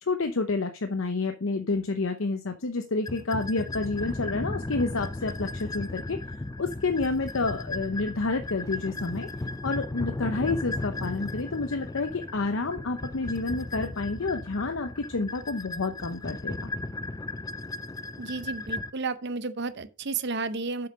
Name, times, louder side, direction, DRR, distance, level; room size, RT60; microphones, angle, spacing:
voice 1, 0.0-6.2 6.6-9.3 9.6-16.7, left 3 dB, 80° left, 0.8 m, -29 dB
sound 1, 3.0-18.9, left 2 dB, 20° left, 0.5 m, -35 dB
voice 2, 18.2-20.9, right 4 dB, 60° right, 0.7 m, -32 dB
7.8 x 5.7 x 5.3 m
head